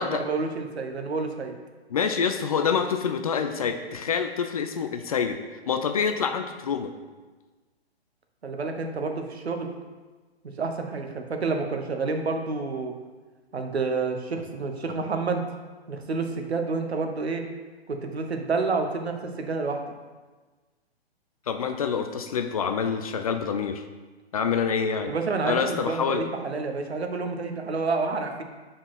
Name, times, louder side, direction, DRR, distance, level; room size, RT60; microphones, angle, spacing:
voice 1, 0.0-1.5 8.4-9.7 10.6-12.9 13.5-15.5 15.9-17.4 17.9-19.8 25.1-28.4, right 4 dB, 75° right, 4 dB, 1.0 m, -29 dB
voice 2, 1.9-6.9 21.5-23.8 24.3-25.1 25.4-26.2, left 6 dB, 35° left, 7 dB, 0.4 m, -26 dB
5.2 x 4.2 x 5.7 m, 1.3 s
figure-of-eight pair, 130°, 32 cm